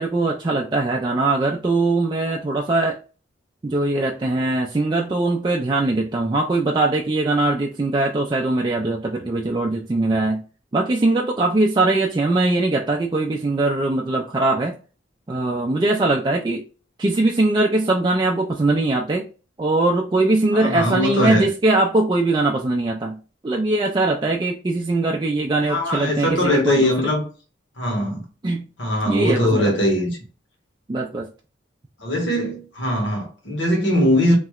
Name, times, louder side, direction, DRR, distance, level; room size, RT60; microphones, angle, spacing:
voice 1, 0.0-3.0 3.6-10.4 10.7-14.7 15.3-16.6 17.0-19.3 19.6-23.2 23.4-26.9 28.4-28.7 29.1-29.7 30.9-31.3, right 2 dB, 25° right, 0.3 m, -21 dB
voice 2, 20.5-21.5 25.7-27.2 27.8-28.2 28.8-30.2 32.0-34.4, left 1 dB, 85° left, 1.4 m, -21 dB
3.1 x 2.8 x 2.3 m
head